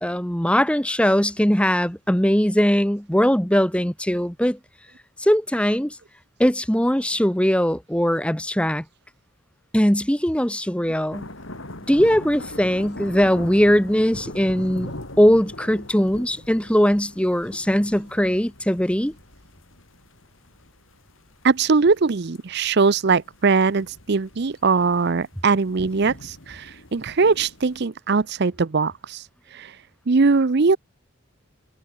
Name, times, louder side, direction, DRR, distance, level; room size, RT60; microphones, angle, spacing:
voice 1, 0.0-4.6 5.2-6.0 6.4-8.8 9.7-11.3 11.9-14.9 15.2-19.1, equal, 5° left, 1.7 m, -20 dB
sound 1, 11.1-27.8, left 1 dB, 70° left, 4.7 m, -41 dB
voice 2, 21.4-29.8 30.1-30.8, right 4 dB, 50° right, 0.6 m, -21 dB
head